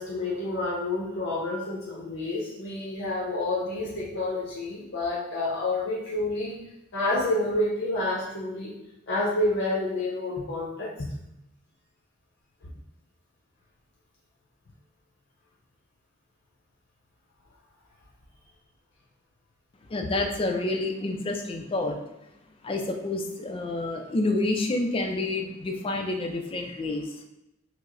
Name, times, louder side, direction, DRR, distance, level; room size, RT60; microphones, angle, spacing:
voice 1, 0.0-6.6 6.9-8.7 9.1-11.1, left 2 dB, 60° left, -5 dB, 0.6 m, -29 dB
voice 2, 19.9-22.0 22.6-27.0, left 2 dB, 25° left, 4 dB, 0.4 m, -28 dB
4.6 x 2.0 x 2.5 m, 0.85 s
head